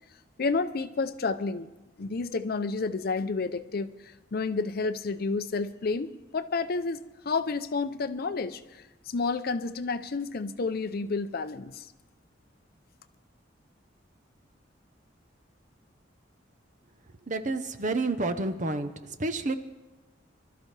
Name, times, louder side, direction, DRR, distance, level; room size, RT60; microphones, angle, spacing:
voice 1, 0.4-1.7 2.0-11.9, left 4 dB, 55° left, 12 dB, 0.6 m, -30 dB
voice 2, 17.3-18.9 19.2-19.5, right 2 dB, 40° right, 10 dB, 0.8 m, -29 dB
24.0 x 13.0 x 3.3 m, 1.1 s
head